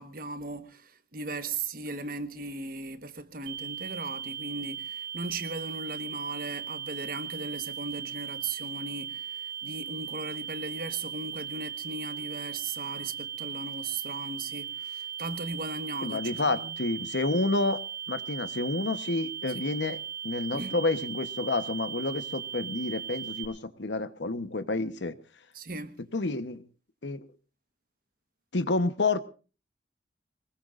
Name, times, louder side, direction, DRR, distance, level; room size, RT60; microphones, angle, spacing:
voice 1, 0.0-16.8 19.6-19.7 20.5-20.8 25.5-26.0, right 3 dB, 55° right, 1.3 m, -37 dB
sound 1, 3.5-23.5, right 9 dB, 70° right, 3.5 m, -38 dB
voice 2, 16.0-17.8 18.1-20.0 20.2-25.1 26.1-26.6 27.0-27.3 28.5-29.2, left 2 dB, 85° left, 1.0 m, -29 dB
23.0 x 20.5 x 2.5 m
head